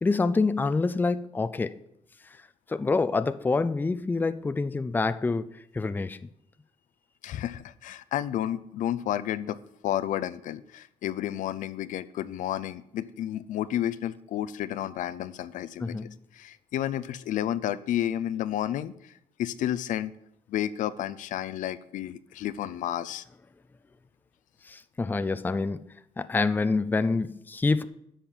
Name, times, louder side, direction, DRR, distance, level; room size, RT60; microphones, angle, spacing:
voice 1, 0.0-1.8 2.7-5.5 5.7-6.2 15.8-16.1 24.7-25.8 26.2-27.8, left 3 dB, 15° left, 0.4 m, -26 dB
voice 2, 7.2-9.6 9.8-16.0 16.3-19.1 19.4-20.1 20.5-23.2, left 11 dB, 80° left, 0.5 m, -31 dB
10.0 x 5.7 x 7.1 m
cardioid pair, 115°, 13 cm